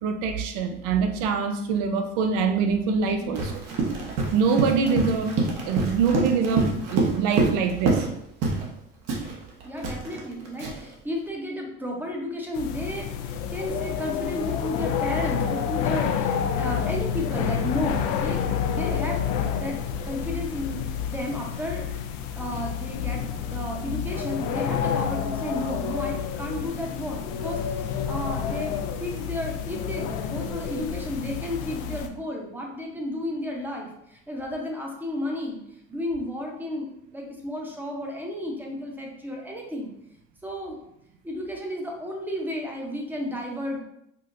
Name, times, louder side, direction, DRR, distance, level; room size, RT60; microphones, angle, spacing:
voice 1, 0.0-3.5 4.3-5.3 5.7-8.1, right 5 dB, 80° right, 5 dB, 0.5 m, -24 dB
Run, 3.3-8.1 8.4-8.7 9.1-10.9, right 3 dB, 60° right, 0.9 m, -26 dB
voice 2, 9.6-19.8 20.0-22.0 22.4-35.6 35.9-39.9 40.4-40.8 41.2-43.8, left 1 dB, 5° right, 0 dB, 0.7 m, -33 dB
sound 1, 12.5-32.1, left 7 dB, 75° left, 0.4 m, -29 dB
4.5 x 2.1 x 2.5 m, 0.78 s
supercardioid pair, 105°, 29 cm